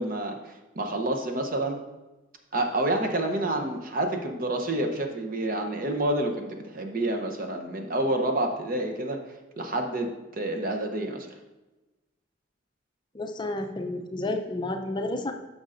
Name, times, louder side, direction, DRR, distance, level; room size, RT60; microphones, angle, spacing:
voice 1, 0.0-1.8 2.5-9.2 9.6-11.3, right 1 dB, 45° right, 3 dB, 0.8 m, -28 dB
voice 2, 13.1-15.3, left 2 dB, 25° left, 5 dB, 0.5 m, -31 dB
9.6 x 6.2 x 2.5 m, 1.1 s
head